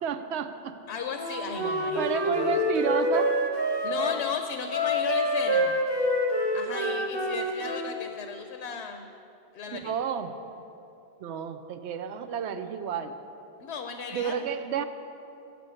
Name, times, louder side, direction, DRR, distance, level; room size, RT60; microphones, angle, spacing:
voice 1, 0.0-0.7 1.7-3.3 9.7-10.3 11.2-13.1 14.1-14.8, right 7 dB, 75° right, 9 dB, 0.9 m, -31 dB
voice 2, 0.9-2.6 3.8-5.8 6.5-9.1 9.5-9.9 13.6-14.3, left 5 dB, 75° left, 5 dB, 0.9 m, -36 dB
Wind instrument woodwind instrument, 1.1-4.2 4.7-7.9, equal, 25° right, 1.0 m, -27 dB
8.3 x 6.9 x 7.6 m, 2.8 s
omnidirectional pair, 1.2 m